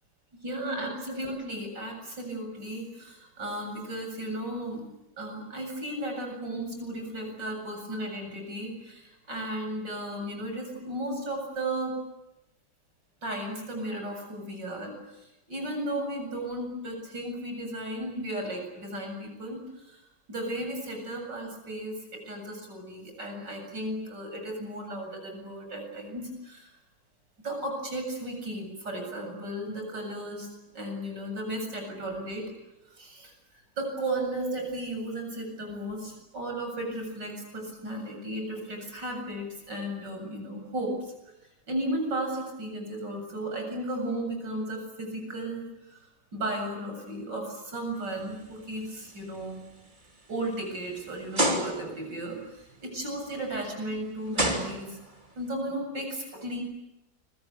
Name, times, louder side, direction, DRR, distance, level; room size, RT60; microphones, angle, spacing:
voice 1, 0.4-4.8 5.2-12.0 13.2-20.0 20.3-26.7 27.4-30.5 30.7-32.5 32.9-33.3 33.8-41.1 41.7-46.0 46.3-49.6 50.3-55.0 55.4-56.6, right 1 dB, 90° right, 3 dB, 8.4 m, -35 dB
sound 1, 48.2-48.5 49.0-49.2 49.9-50.0 51.3-52.1 53.6-53.7 54.3-55.3, right 1 dB, 25° right, 3.2 m, -28 dB
29.0 x 23.5 x 8.4 m, 0.93 s
omnidirectional pair, 1.9 m